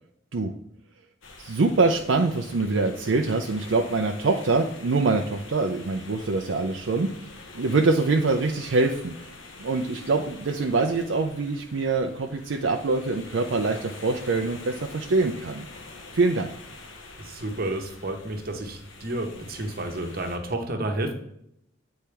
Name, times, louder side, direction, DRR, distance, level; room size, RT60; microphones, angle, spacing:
sound 1, 1.2-20.4, left 3 dB, 75° left, 1.1 m, -45 dB
voice 1, 1.4-7.1 7.5-9.1 9.6-15.7 16.1-16.5, right 3 dB, 70° right, 3 dB, 0.5 m, -24 dB
voice 2, 17.2-21.1, right 1 dB, 50° right, 4 dB, 1.1 m, -31 dB
8.6 x 4.4 x 3.4 m, 0.73 s
head